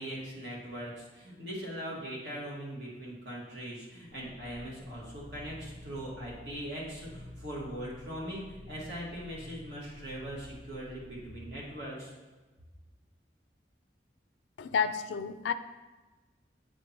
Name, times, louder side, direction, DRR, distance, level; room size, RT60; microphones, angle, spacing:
voice 1, 0.0-12.1, equal, 75° right, -5 dB, 2.0 m, -40 dB
sound 1, 4.1-11.9, left 1 dB, 45° right, 1.2 m, -50 dB
voice 2, 14.6-15.5, left 6 dB, 85° left, 11 dB, 0.4 m, -30 dB
8.5 x 5.1 x 3.0 m, 1.2 s
head